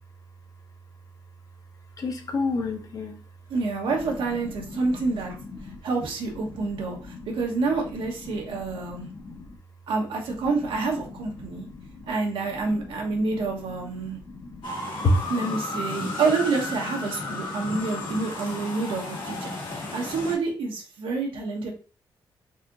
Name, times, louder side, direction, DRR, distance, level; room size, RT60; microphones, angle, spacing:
voice 1, 2.0-3.2 3.9-4.0 4.3-5.8 6.3-7.4 7.9-9.6 10.4-10.5 10.7-12.1 12.5-14.7 15.0-15.1, left 3 dB, 45° left, 4 dB, 0.7 m, -33 dB
voice 2, 3.5-5.4 5.8-9.1 9.9-11.7 12.1-14.2 15.3-19.6 19.9-21.7, right 3 dB, 85° right, 1 dB, 1.0 m, -28 dB
sound 1, 14.6-20.4, left 2 dB, 80° left, 1.6 m, -33 dB
4.1 x 2.8 x 2.5 m, 0.36 s
cardioid pair, 135°, 9 cm